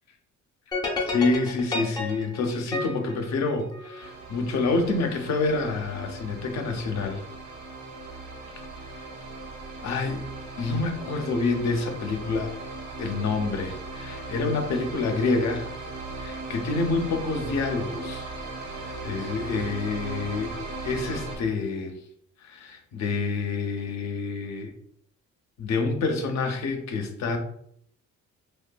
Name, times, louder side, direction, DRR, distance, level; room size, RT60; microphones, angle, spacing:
sound 1, 0.7-4.1, left 2 dB, 15° left, 0.5 m, -31 dB
voice 1, 1.0-7.2 9.8-10.2 10.6-12.6 13.0-15.7 16.2-18.3 18.7-20.5 20.8-21.9 22.4-24.7 25.6-27.4, left 3 dB, 65° left, 5 dB, 0.6 m, -27 dB
sound 2, 4.0-21.4, right 3 dB, 65° right, 0.9 m, -38 dB
2.7 x 2.1 x 2.2 m, 0.67 s
cardioid pair, 90°, 30 cm